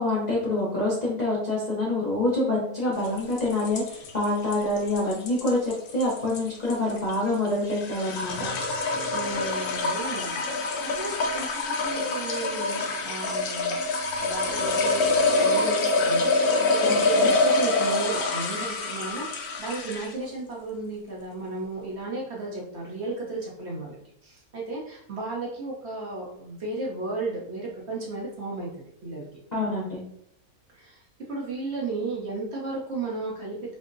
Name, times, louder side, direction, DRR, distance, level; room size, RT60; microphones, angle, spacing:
voice 1, 0.0-8.5 16.8-17.3 29.5-30.0, left 2 dB, 40° left, -6 dB, 0.6 m, -26 dB
sound 1, 3.0-20.2, left 3 dB, 85° left, 1.1 m, -26 dB
voice 2, 9.1-13.8 14.2-24.0 24.2-28.7 29.0-29.3 30.7-31.0 31.3-33.6, right 3 dB, 50° right, -4 dB, 1.0 m, -34 dB
5.2 x 2.1 x 2.5 m, 0.72 s
omnidirectional pair, 1.6 m